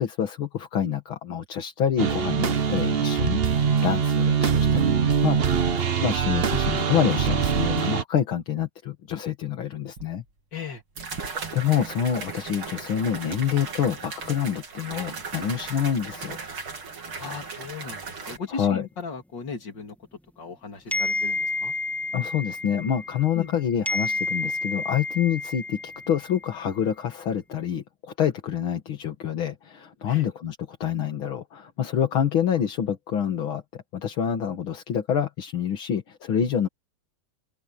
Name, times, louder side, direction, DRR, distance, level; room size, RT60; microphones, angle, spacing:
voice 1, 0.0-10.2 11.5-16.4 18.5-18.8 22.1-36.7, left 9 dB, 75° left, 2.5 m, -27 dB
sound 1, 2.0-8.0, right 6 dB, 45° right, 0.8 m, -23 dB
sound 2, 10.0-10.1 11.0-18.4, right 4 dB, 85° right, 4.2 m, -37 dB
voice 2, 10.5-10.8 17.2-20.0 20.4-21.7 23.3-23.7 30.1-30.3, left 6 dB, 60° left, 3.5 m, -37 dB
sound 3, 20.9-23.5 23.9-26.4, left 2 dB, ahead, 1.7 m, -30 dB
open air
omnidirectional pair, 2.2 m